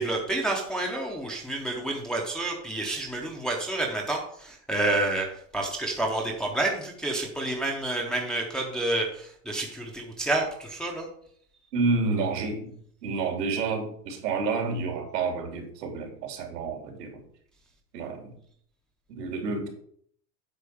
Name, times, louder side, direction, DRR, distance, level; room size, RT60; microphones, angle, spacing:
voice 1, 0.0-5.3 5.5-11.1, right 2 dB, ahead, 0 dB, 0.6 m, -29 dB
voice 2, 11.7-12.7 13.0-17.2 17.9-18.3 19.1-19.7, right 4 dB, 75° right, 2 dB, 3.1 m, -29 dB
8.5 x 4.1 x 6.9 m, 0.63 s
supercardioid pair, 150°, 48 cm